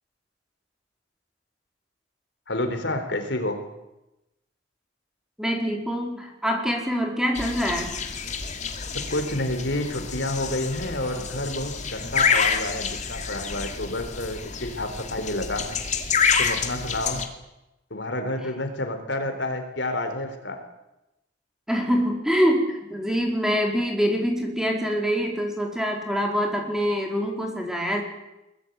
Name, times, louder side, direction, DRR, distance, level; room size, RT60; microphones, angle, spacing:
voice 1, 2.5-3.6 9.1-15.8 16.4-17.3 17.9-20.6, left 1 dB, 65° left, 7 dB, 4.1 m, -29 dB
voice 2, 5.4-7.9 21.7-28.0, equal, 5° right, 2 dB, 4.4 m, -25 dB
mwere morning, 7.3-17.2, left 6 dB, 40° left, 2.7 m, -28 dB
22.5 x 22.0 x 9.3 m, 0.95 s
head